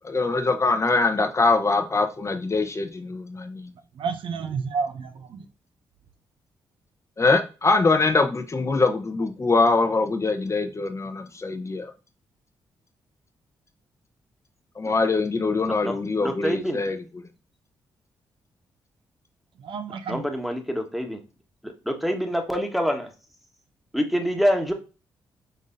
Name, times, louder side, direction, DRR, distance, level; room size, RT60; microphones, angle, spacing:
voice 1, 0.0-3.6 7.2-11.9 14.8-16.9, left 3 dB, 30° left, 0.8 m, -23 dB
voice 2, 4.0-5.4 19.6-20.2, right 5 dB, 70° right, 0.6 m, -30 dB
voice 3, 15.6-16.0 16.2-16.8 20.1-21.2 21.6-23.1 23.9-24.7, equal, ahead, 1.3 m, -26 dB
5.5 x 3.6 x 2.6 m
supercardioid pair, 55°, 9 cm